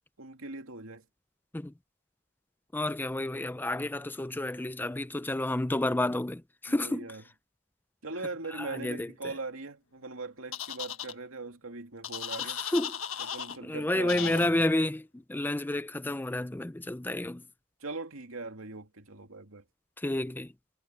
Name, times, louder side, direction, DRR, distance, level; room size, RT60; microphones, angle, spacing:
voice 1, 0.2-1.1 6.7-7.2 8.0-12.6 13.2-14.7 17.8-19.6, right 3 dB, 80° right, 2.6 m, -40 dB
voice 2, 2.7-7.1 8.5-9.1 12.4-12.9 13.6-17.4 20.0-20.5, left 1 dB, 10° left, 0.4 m, -30 dB
sound 1, 10.5-11.1 12.0-13.6 14.1-14.5, left 9 dB, 80° left, 1.5 m, -36 dB
head